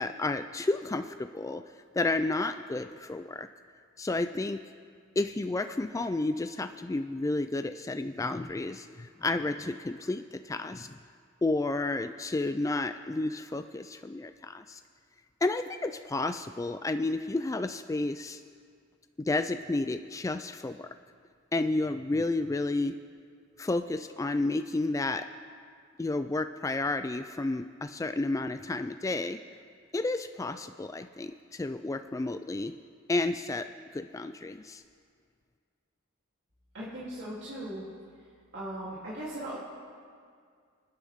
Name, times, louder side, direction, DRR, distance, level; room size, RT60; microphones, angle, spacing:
voice 1, 0.0-1.6 1.9-3.5 4.0-4.6 5.2-11.0 11.4-14.8 15.4-18.4 19.2-20.9 21.5-23.0 23.6-25.2 26.0-29.4 29.9-32.7 33.1-33.7 33.9-34.8, left 2 dB, 15° left, 9 dB, 0.3 m, -31 dB
voice 2, 36.7-37.8 38.5-39.6, right 1 dB, 60° right, -10 dB, 3.1 m, -38 dB
26.5 x 10.0 x 3.6 m, 2.1 s
head